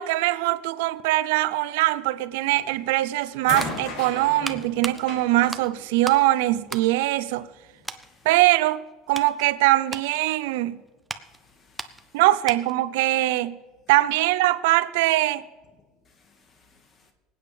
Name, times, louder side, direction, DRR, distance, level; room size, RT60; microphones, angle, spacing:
voice 1, 0.0-7.5 8.2-8.8 9.1-10.8 12.1-13.6 13.9-15.4, right 16 dB, 85° right, 0.5 m, -22 dB
sound 1, 2.5-2.9 3.4-6.7 7.7-7.8, left 3 dB, 55° left, 3.4 m, -37 dB
sound 2, 3.2-6.3 6.6-7.6 7.8-8.1 8.6-12.9 13.2-13.3, right 1 dB, 5° right, 0.6 m, -38 dB
voice 2, 11.2-12.2 15.7-17.1, left 4 dB, 30° left, 1.8 m, -60 dB
25.0 x 8.8 x 3.4 m
cardioid pair, 145°, 0 cm